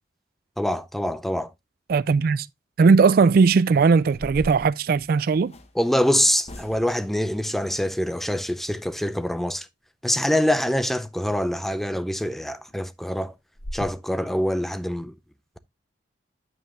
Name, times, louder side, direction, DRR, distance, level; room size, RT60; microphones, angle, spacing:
voice 1, 0.6-1.5 5.8-9.7 10.0-13.3 13.7-15.1, equal, ahead, 0.5 m, -25 dB
voice 2, 1.9-2.5 2.8-5.5, right 4 dB, 55° right, 0.3 m, -18 dB
sound 1, 4.0-5.7 6.4-7.1 11.6-11.8 12.2-12.3 12.7-12.8 13.2-13.3 13.6-13.9, equal, 35° left, 1.1 m, -40 dB
9.2 x 7.2 x 2.4 m
head